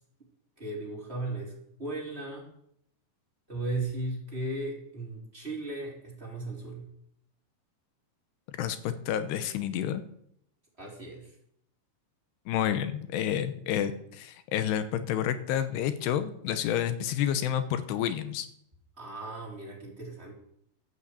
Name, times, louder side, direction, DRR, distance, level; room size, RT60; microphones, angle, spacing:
voice 1, 0.6-1.5 1.8-2.5 3.5-6.9 10.8-11.3 19.0-20.3, right 2 dB, 15° right, -3 dB, 3.7 m, -36 dB
voice 2, 8.6-10.0 12.5-18.5, left 10 dB, 80° left, 11 dB, 2.9 m, -29 dB
13.0 x 8.6 x 8.1 m, 0.72 s
omnidirectional pair, 4.9 m